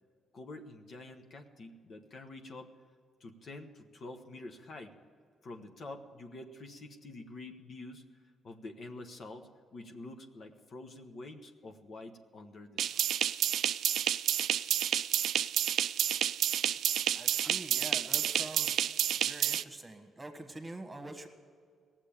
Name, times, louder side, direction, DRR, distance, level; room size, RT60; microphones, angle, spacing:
voice 1, 0.3-2.7 3.2-5.0 5.4-13.0, left 2 dB, 50° left, 5 dB, 1.1 m, -47 dB
sound 1, 12.8-19.6, right 10 dB, 75° right, 0.3 m, -30 dB
voice 2, 17.1-18.9 19.2-21.3, right 2 dB, 20° right, 5 dB, 1.5 m, -45 dB
17.0 x 7.5 x 8.5 m, 2.1 s
cardioid pair, 90°, 0 cm